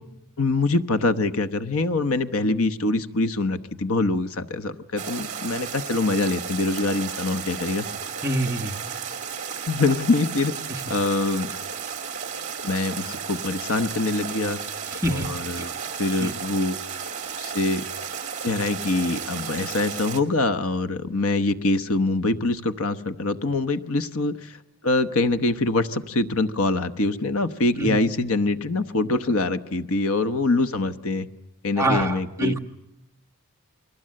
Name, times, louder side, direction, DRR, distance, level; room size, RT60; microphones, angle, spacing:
voice 1, 0.4-7.9 9.7-10.5 10.9-11.5 12.6-14.6 15.1-15.7 16.0-16.8 17.4-17.8 18.4-31.3 31.6-32.6, left 2 dB, 65° left, 10 dB, 1.0 m, -24 dB
sound 1, 5.0-20.2, right 7 dB, 35° right, 2.5 m, -33 dB
voice 2, 8.2-8.8 10.7-10.8 14.9-15.3 15.6-15.7 16.2-16.3 27.8-28.0 31.8-32.6, right 1 dB, 15° right, 2 dB, 1.4 m, -25 dB
29.5 x 22.5 x 7.7 m, 0.90 s
head